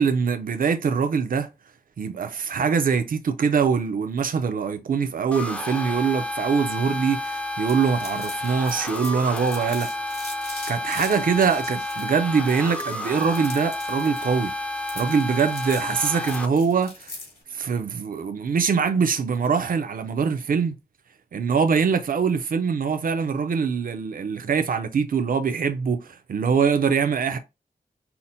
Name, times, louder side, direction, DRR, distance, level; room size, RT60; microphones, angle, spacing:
voice 1, 0.0-1.5 2.0-9.9 10.7-14.5 15.0-17.1 17.5-20.8 21.3-27.4, right 6 dB, 60° right, 0.5 m, -23 dB
sound 1, 5.3-16.5, left 2 dB, 5° left, 0.4 m, -31 dB
sound 2, 7.7-17.4, left 3 dB, 70° left, 1.8 m, -41 dB
5.7 x 2.1 x 2.6 m
wide cardioid pair, 120°, 16 cm